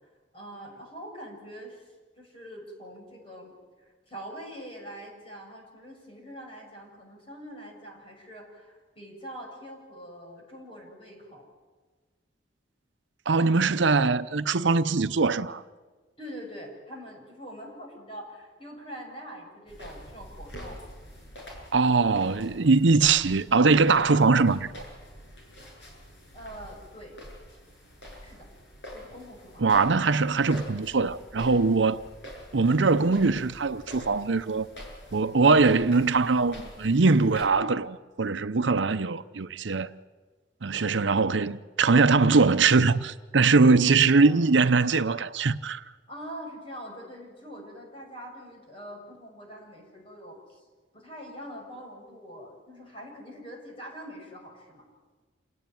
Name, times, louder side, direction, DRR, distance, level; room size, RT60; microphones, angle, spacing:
voice 1, 0.3-1.9 2.2-3.5 3.8-11.5 16.2-20.8 26.3-27.1 28.2-28.5 28.9-29.7 44.2-44.4 46.1-50.6 50.9-54.9, equal, 30° left, 7.2 m, -44 dB
voice 2, 13.3-15.6 21.7-24.7 29.6-32.0 32.5-34.7 35.1-39.9 40.6-45.8, right 4 dB, 80° right, 0.7 m, -22 dB
sound 1, 19.7-37.4, equal, 70° left, 7.4 m, -46 dB
27.5 x 17.5 x 9.2 m
head